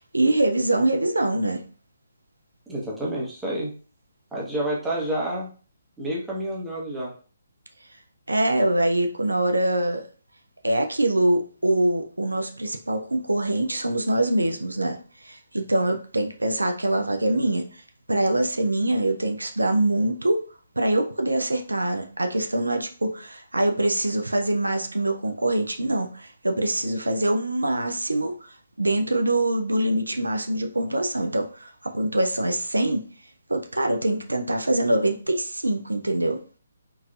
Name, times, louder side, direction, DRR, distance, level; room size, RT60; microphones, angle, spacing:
voice 1, 0.1-1.6 8.3-10.0 10.6-17.8 18.1-20.4 20.8-33.0 33.5-36.4, right 1 dB, 80° right, 0.5 m, -24 dB
voice 2, 2.7-3.7 4.3-5.5 6.0-7.2 26.8-27.0, right 1 dB, 5° right, 1.0 m, -29 dB
3.8 x 2.7 x 2.4 m
figure-of-eight pair, 140°, 0 cm